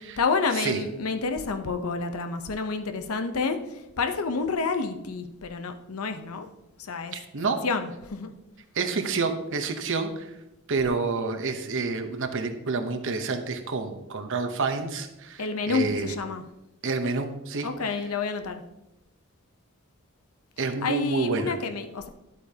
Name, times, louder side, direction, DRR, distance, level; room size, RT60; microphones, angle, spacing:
voice 1, 0.2-6.5 6.8-7.1 7.6-8.3 15.4-16.4 17.6-18.6 20.8-22.1, left 4 dB, 80° left, 7 dB, 0.7 m, -29 dB
voice 2, 7.1-7.6 8.7-10.3 10.7-16.2 16.8-17.7 20.6-21.5, right 4 dB, 60° right, 7 dB, 0.9 m, -28 dB
10.5 x 8.3 x 2.8 m, 0.93 s
head